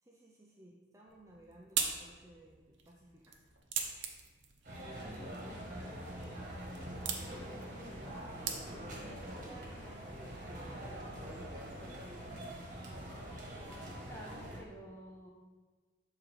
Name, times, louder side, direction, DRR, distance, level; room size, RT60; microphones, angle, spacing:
voice 1, 0.0-3.4 4.9-6.6 7.1-7.5 8.6-11.9, right 1 dB, 15° right, -3 dB, 0.5 m, -57 dB
sound 1, 1.1-9.1, right 7 dB, 65° right, 0.7 m, -42 dB
sound 2, 4.6-14.6, right 1 dB, 40° right, 1.4 m, -44 dB
voice 2, 4.9-6.0 6.3-6.6 7.0-8.1 13.8-15.3, equal, 15° left, -1 dB, 0.8 m, -52 dB
6.5 x 3.8 x 4.6 m, 1.3 s
head